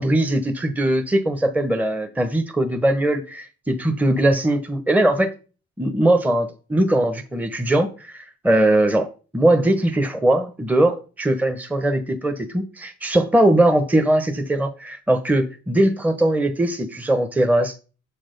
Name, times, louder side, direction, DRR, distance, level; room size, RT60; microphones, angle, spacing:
voice 1, 0.0-5.3 5.8-17.8, right 1 dB, 5° right, 0.9 m, -20 dB
7.1 x 4.3 x 5.2 m
cardioid pair, 90°, 30 cm